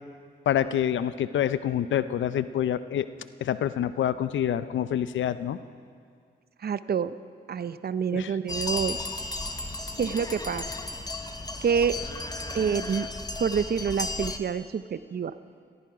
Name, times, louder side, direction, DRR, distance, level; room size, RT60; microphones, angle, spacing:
voice 1, 0.5-3.1 3.4-5.6 8.1-8.3, left 10 dB, 75° left, 14 dB, 0.6 m, -27 dB
voice 2, 6.6-7.1 7.5-9.0 10.0-10.6 11.6-12.0 12.5-13.1 13.4-15.4, right 7 dB, 55° right, 14 dB, 0.6 m, -27 dB
sound 1, 8.5-14.4, left 2 dB, 20° left, 1.2 m, -34 dB
18.0 x 14.5 x 4.9 m, 2.2 s
supercardioid pair, 50°, 20 cm